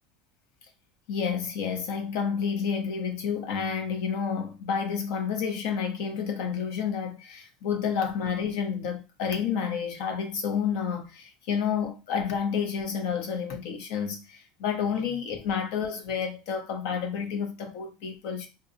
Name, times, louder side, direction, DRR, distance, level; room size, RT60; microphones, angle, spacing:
voice 1, 1.1-18.5, left 7 dB, 70° left, 0.8 m, -30 dB
3.9 x 2.2 x 2.6 m
supercardioid pair, 130°, 3 cm